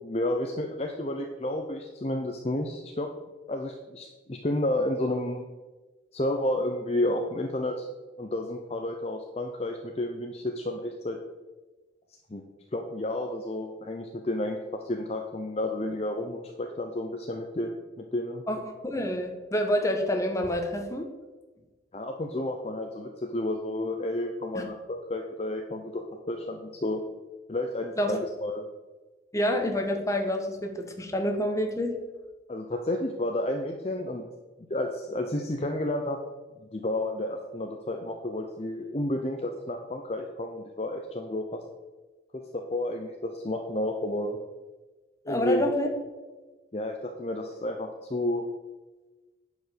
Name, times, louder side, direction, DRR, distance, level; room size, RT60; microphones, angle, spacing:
voice 1, 0.0-3.1 3.5-5.5 6.1-7.9 8.2-11.2 12.3-12.4 12.7-18.4 21.9-27.0 27.5-28.6 32.5-34.2 34.7-36.2 36.6-41.6 42.3-44.4 45.2-45.6 46.7-48.5, left 1 dB, 35° left, 3 dB, 0.6 m, -31 dB
voice 2, 18.5-21.1 24.5-24.6 28.0-28.2 29.3-32.0 45.3-45.9, left 1 dB, 15° left, 4 dB, 1.2 m, -28 dB
9.9 x 5.2 x 6.8 m, 1.2 s
head